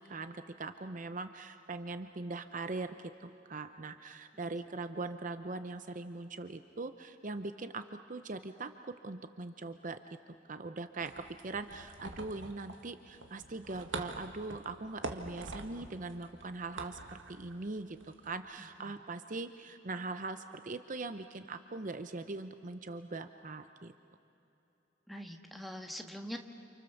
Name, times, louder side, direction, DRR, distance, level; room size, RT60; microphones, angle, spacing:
voice 1, 0.0-10.2 10.5-23.9, right 3 dB, 40° right, 9 dB, 0.7 m, -41 dB
sound 1, 11.0-18.3, right 2 dB, 75° right, 1.9 m, -46 dB
voice 2, 25.1-26.4, equal, ahead, 3 dB, 1.5 m, -44 dB
29.5 x 28.5 x 7.1 m, 2.9 s
head